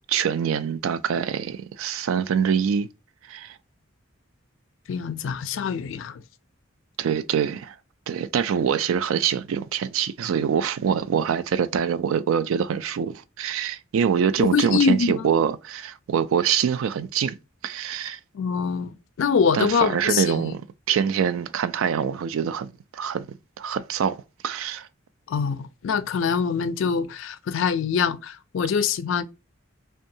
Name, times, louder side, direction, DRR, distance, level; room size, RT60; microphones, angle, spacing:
voice 1, 0.1-2.9 3.3-3.6 7.0-7.7 8.1-17.4 17.6-18.2 19.5-23.3 23.6-24.2 24.4-24.9, right 7 dB, 75° right, 0.3 m, -24 dB
voice 2, 4.9-6.2 14.4-15.3 18.3-20.5 25.3-29.2, left 6 dB, 65° left, 0.3 m, -24 dB
2.6 x 2.2 x 2.6 m
head